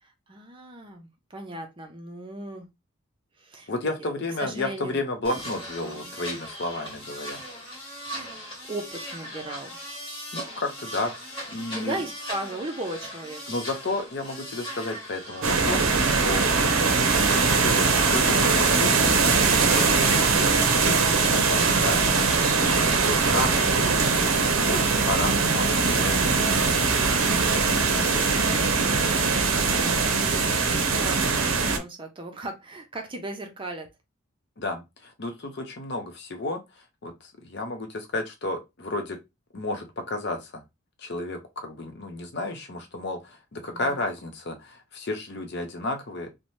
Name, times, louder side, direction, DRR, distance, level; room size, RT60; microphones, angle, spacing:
voice 1, 0.0-2.7 3.4-3.9 4.4-5.0 5.8-6.2 8.1-8.3 8.7-9.7 11.7-13.4 29.5-33.9 43.7-44.0, right 2 dB, 25° right, 0.5 m, -37 dB
voice 2, 3.7-7.4 10.3-12.0 13.5-16.4 17.0-21.0 21.3-22.0 22.6-26.8 27.5-28.4 34.6-36.6 37.0-39.2 39.5-40.6 41.0-46.3, left 2 dB, 50° left, 0.6 m, -32 dB
sound 1, 5.2-23.1, equal, 25° left, 1.2 m, -39 dB
sound 2, 15.4-31.8, right 4 dB, 70° right, 0.6 m, -21 dB
2.7 x 2.1 x 3.0 m
head